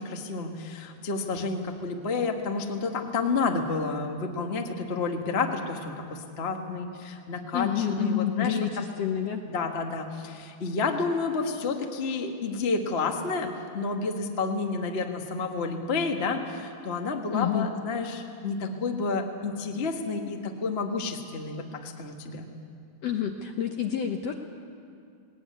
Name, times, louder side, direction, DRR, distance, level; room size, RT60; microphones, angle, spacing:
voice 1, 0.0-8.6 9.5-22.5, left 4 dB, 50° left, 3 dB, 0.7 m, -30 dB
voice 2, 7.5-9.4 17.3-17.7 23.0-24.3, left 9 dB, 70° left, 4 dB, 1.6 m, -28 dB
19.5 x 19.0 x 9.5 m, 2.4 s
omnidirectional pair, 4.0 m